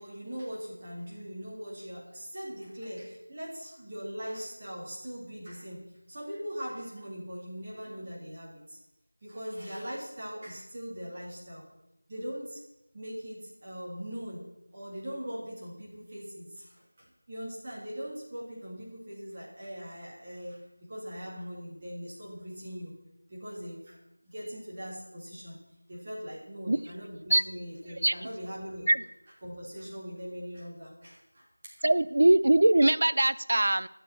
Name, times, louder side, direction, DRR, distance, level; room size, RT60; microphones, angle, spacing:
voice 1, 0.0-8.8 9.2-11.6 12.1-12.6 12.9-23.0 23.3-24.0 24.2-25.6 25.9-28.9 29.4-31.8, equal, 15° right, -4 dB, 1.9 m, -41 dB
voice 2, 31.8-33.9, right 1 dB, 30° right, 16 dB, 0.4 m, -22 dB
13.0 x 6.8 x 8.2 m, 0.92 s
figure-of-eight pair, 180°, 0 cm